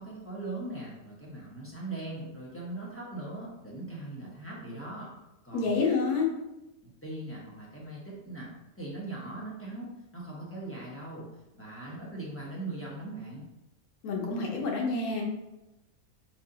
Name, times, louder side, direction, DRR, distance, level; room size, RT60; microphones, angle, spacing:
voice 1, 0.0-5.1 5.4-5.7 6.8-8.5 8.8-11.3 11.5-13.5, right 2 dB, 15° left, -5 dB, 0.5 m, -40 dB
voice 2, 5.5-6.3 14.0-15.3, left 4 dB, 85° left, 0 dB, 1.3 m, -28 dB
3.2 x 2.7 x 3.8 m, 0.96 s
omnidirectional pair, 1.5 m